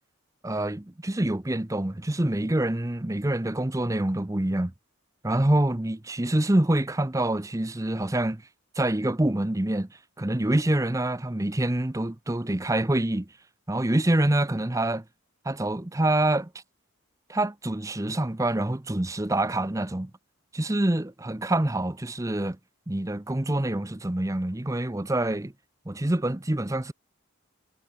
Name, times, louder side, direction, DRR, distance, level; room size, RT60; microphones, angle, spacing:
voice 1, 0.4-4.7 5.2-8.4 8.7-13.3 13.7-15.0 15.4-16.5 17.3-20.1 20.5-22.6 22.9-25.5 25.9-26.9, right 1 dB, 15° right, 0.7 m, -26 dB
head